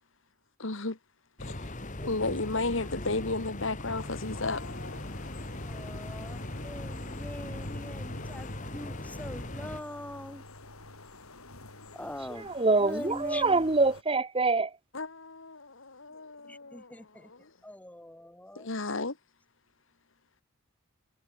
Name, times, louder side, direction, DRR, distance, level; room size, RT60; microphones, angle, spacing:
voice 1, 0.6-1.0 1.4-1.7 2.0-5.1 14.9-17.5 18.6-19.2, left 3 dB, 60° left, 1.8 m, -34 dB
sound 1, 1.4-9.8, left 1 dB, 35° left, 2.2 m, -39 dB
voice 2, 2.0-2.7 3.0-3.1 5.6-10.4 11.9-12.5 12.8-13.7 16.5-17.3 17.6-18.7, left 1 dB, 5° left, 1.5 m, -43 dB
sound 2, 4.0-14.0, left 2 dB, 80° left, 6.4 m, -47 dB
voice 3, 12.4-14.7, right 3 dB, 25° right, 1.0 m, -25 dB
head